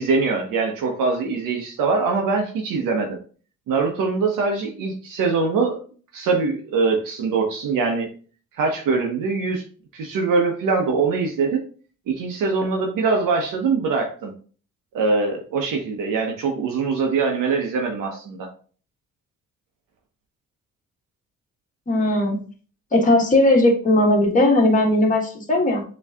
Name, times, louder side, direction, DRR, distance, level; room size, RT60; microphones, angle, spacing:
voice 1, 0.0-3.2 3.7-5.8 6.1-8.1 8.6-9.6 9.9-11.6 12.1-14.3 14.9-18.5, right 4 dB, 80° right, 1 dB, 1.1 m, -23 dB
voice 2, 21.9-22.5 22.9-25.8, left 1 dB, 25° left, 0 dB, 1.4 m, -18 dB
7.0 x 3.2 x 2.4 m, 0.40 s
cardioid pair, 110°, 32 cm